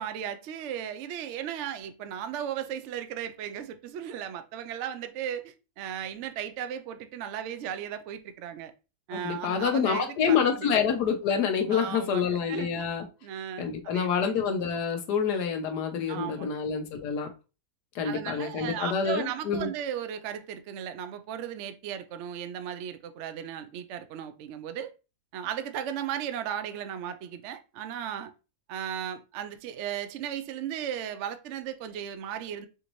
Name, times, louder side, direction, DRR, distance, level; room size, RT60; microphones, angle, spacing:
voice 1, 0.0-8.7 9.1-10.8 11.7-12.8 13.2-14.3 16.1-16.6 18.0-24.9 25.3-28.3 28.7-32.7, right 9 dB, 70° right, 0.7 m, -36 dB
voice 2, 9.2-13.1 13.6-17.3 17.9-19.7, left 6 dB, 90° left, 1.4 m, -27 dB
5.0 x 2.6 x 3.0 m
omnidirectional pair, 1.7 m